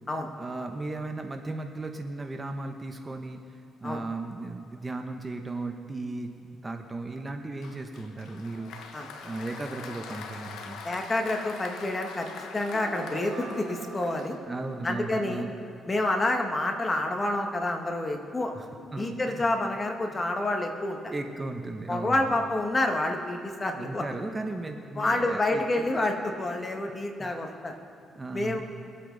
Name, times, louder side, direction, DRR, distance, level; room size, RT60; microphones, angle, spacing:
voice 1, 0.3-8.7 9.2-10.8 14.5-15.5 18.5-19.5 20.1-20.3 21.1-22.3 23.7-25.9 27.2-27.3 28.1-28.6, right 2 dB, 25° right, 5 dB, 1.0 m, -36 dB
Applause, 7.6-14.7, left 5 dB, 85° left, 1.1 m, -43 dB
voice 2, 10.8-14.3 14.8-15.4 15.9-18.5 19.0-21.0 21.9-24.0 25.0-27.7 28.3-28.6, left 2 dB, 25° left, 3 dB, 1.6 m, -28 dB
sound 1, 12.7-16.6, right 5 dB, 60° right, 1.1 m, -44 dB
24.0 x 8.4 x 4.0 m, 2.3 s
cardioid pair, 90°, 0 cm